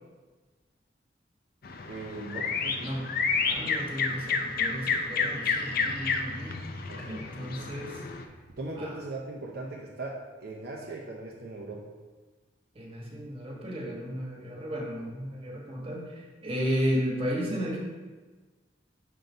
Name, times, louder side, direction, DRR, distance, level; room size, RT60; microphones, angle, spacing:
sound 1, 1.6-8.2, left 4 dB, 55° left, 0.5 m, -30 dB
voice 1, 1.9-2.9 6.9-7.7 8.6-11.9, right 2 dB, 60° right, -3 dB, 0.7 m, -39 dB
voice 2, 2.8-6.6 7.1-8.0 8.8-8.9 12.7-17.8, equal, 30° right, -3 dB, 1.4 m, -34 dB
5.5 x 4.0 x 5.5 m, 1.3 s
head